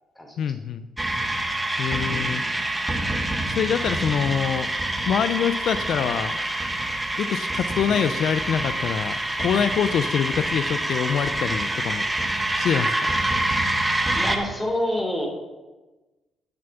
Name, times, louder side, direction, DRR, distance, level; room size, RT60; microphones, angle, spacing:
voice 1, 0.4-0.9 1.8-2.4 3.5-4.7 5.1-6.4 7.2-12.0 12.6-13.1, left 8 dB, 70° left, 12 dB, 0.5 m, -25 dB
sound 1, 1.0-14.4, right 1 dB, 10° right, 1.6 m, -26 dB
voice 2, 14.1-15.3, left 1 dB, 10° left, 2 dB, 3.3 m, -27 dB
10.5 x 7.1 x 6.8 m, 1.2 s
cardioid pair, 90°, 0 cm